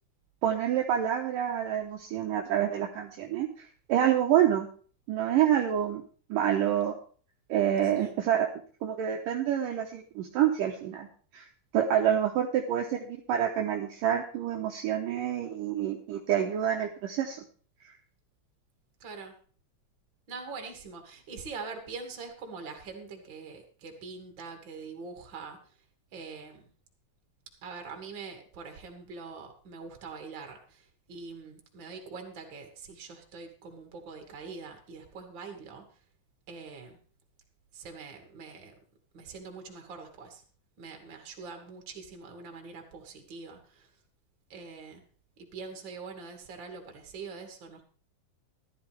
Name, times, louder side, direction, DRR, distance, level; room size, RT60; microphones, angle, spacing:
voice 1, 0.4-4.7 5.1-6.0 6.3-6.9 7.5-8.5 8.8-11.1 11.3-11.5 11.7-17.4, right 10 dB, 80° right, 2 dB, 1.9 m, -27 dB
voice 2, 7.8-8.2 19.0-19.3 20.3-25.7 26.1-26.7 27.6-35.8 36.5-37.0 37.7-38.7 39.1-40.4 40.8-43.9 44.5-45.0 45.4-47.8, right 4 dB, 40° right, 4 dB, 1.9 m, -44 dB
14.5 x 12.5 x 3.4 m, 0.42 s
omnidirectional pair, 5.3 m